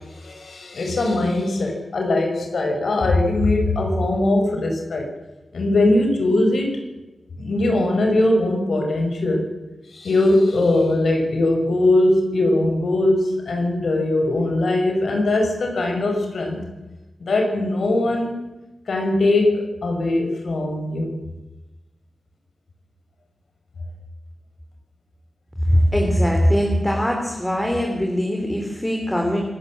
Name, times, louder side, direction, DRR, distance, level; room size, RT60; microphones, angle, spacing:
voice 1, 0.0-5.1 5.5-6.8 7.4-9.4 9.9-16.7 17.2-18.4 18.9-21.1, left 2 dB, 80° left, 3 dB, 5.6 m, -20 dB
voice 2, 25.7-29.5, equal, 10° left, 1 dB, 3.6 m, -21 dB
25.5 x 13.5 x 7.7 m, 1.0 s
wide cardioid pair, 95°, 0 cm